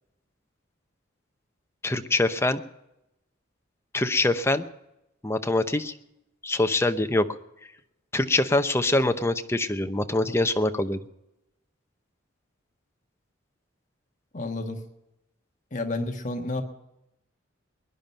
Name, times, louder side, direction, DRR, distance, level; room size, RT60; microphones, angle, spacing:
voice 1, 1.8-2.6 3.9-4.7 5.2-5.9 6.4-7.3 8.1-11.0, left 2 dB, 15° left, 7 dB, 0.8 m, -24 dB
voice 2, 14.3-14.8 15.7-16.6, left 2 dB, 40° left, 5 dB, 1.5 m, -30 dB
21.0 x 11.0 x 5.6 m, 0.89 s
head